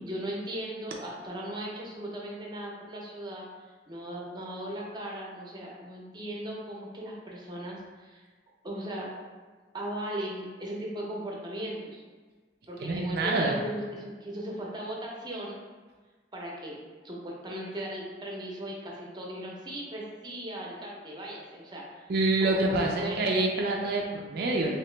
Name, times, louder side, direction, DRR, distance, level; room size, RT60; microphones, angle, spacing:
voice 1, 0.0-3.5 3.9-8.2 8.6-9.1 9.7-12.0 12.7-15.6 16.3-16.8 17.0-22.1 22.4-23.2, right 1 dB, 25° right, -3 dB, 0.7 m, -37 dB
voice 2, 12.8-13.6 22.1-24.8, right 2 dB, 60° right, 0 dB, 0.4 m, -26 dB
3.0 x 2.9 x 3.2 m, 1.4 s
head